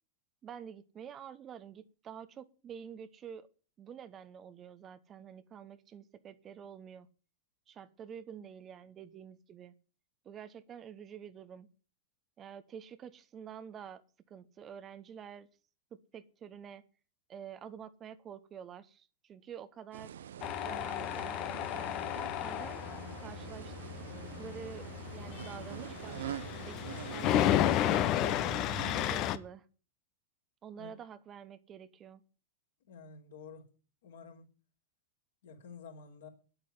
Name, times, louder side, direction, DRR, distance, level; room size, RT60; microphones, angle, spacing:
voice 1, 0.4-3.5 3.8-7.1 7.7-9.7 10.2-11.7 12.4-14.0 14.3-15.5 15.9-16.8 17.3-20.1 20.6-22.8 23.2-23.7 24.4-26.8 27.1-28.4 29.0-29.7 30.6-32.2, right 8 dB, 25° right, 13 dB, 1.0 m, -48 dB
sound 1, 19.9-29.2, right 10 dB, 60° right, 0.7 m, -45 dB
Tools, 20.4-29.4, left 12 dB, 40° left, 1.0 m, -33 dB
voice 2, 32.8-33.7 34.0-34.5 35.4-36.3, left 5 dB, 60° left, 1 dB, 3.8 m, -50 dB
10.5 x 8.9 x 9.5 m, 0.38 s
figure-of-eight pair, 90°, 0 cm